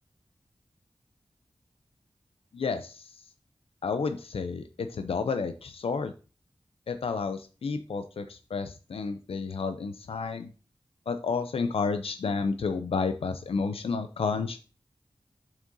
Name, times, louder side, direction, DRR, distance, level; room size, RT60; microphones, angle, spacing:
voice 1, 2.5-3.0 3.8-6.1 6.9-10.5 11.1-14.6, left 4 dB, 90° left, 9 dB, 0.4 m, -31 dB
7.4 x 6.1 x 2.7 m, 0.35 s
wide cardioid pair, 75°, 10 cm